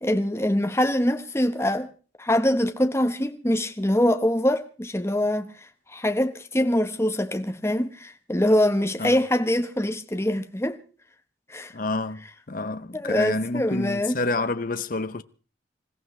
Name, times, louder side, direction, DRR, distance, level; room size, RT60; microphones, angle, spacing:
voice 1, 0.0-1.9 2.2-5.5 5.9-10.8 11.5-11.7 12.9-14.1, left 1 dB, 15° left, 1.0 m, -24 dB
voice 2, 11.7-15.2, left 3 dB, 45° left, 0.7 m, -28 dB
26.5 x 15.0 x 3.2 m
head